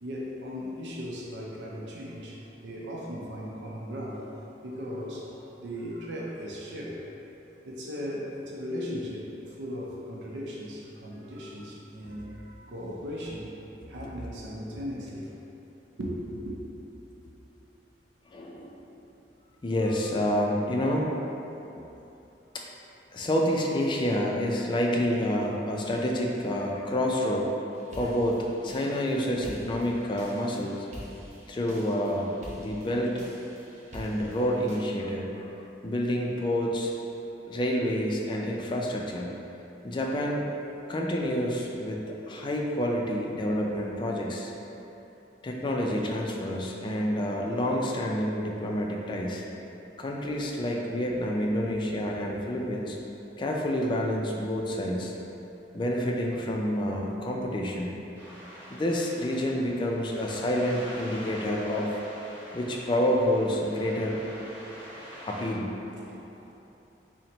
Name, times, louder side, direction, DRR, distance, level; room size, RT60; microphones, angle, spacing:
voice 1, 0.0-4.3 4.6-7.0 7.6-13.5 13.9-15.3 16.0-16.6 65.9-66.5, equal, 85° right, -3 dB, 0.5 m, -37 dB
voice 2, 18.3-18.8 19.6-21.1 22.5-22.6 23.1-27.5 27.9-30.9 31.5-32.3 32.6-33.1 33.9-35.5 35.8-36.9 37.5-39.4 39.8-40.5 40.9-44.5 45.4-49.4 50.0-53.0 53.4-55.1 55.7-57.9 58.7-62.0 62.5-64.2 65.3-65.7, equal, 25° left, -1 dB, 0.4 m, -28 dB
sound 1, 27.7-34.8, equal, 40° right, 0.6 m, -46 dB
sound 2, 58.1-65.5, equal, 25° right, 1.4 m, -45 dB
4.3 x 2.1 x 3.8 m, 2.9 s
head